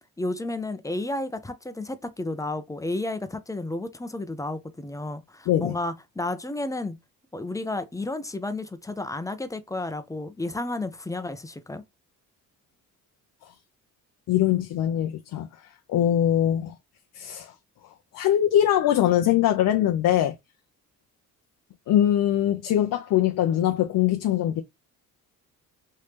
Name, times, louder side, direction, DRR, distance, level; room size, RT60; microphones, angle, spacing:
voice 1, 0.2-7.0 7.3-11.8, left 2 dB, 10° left, 0.5 m, -32 dB
voice 2, 14.3-15.5 15.9-16.8 17.2-17.5 18.1-20.3 21.9-24.6, left 11 dB, 60° left, 0.6 m, -22 dB
3.2 x 2.8 x 3.2 m
cardioid pair, 80°, 37 cm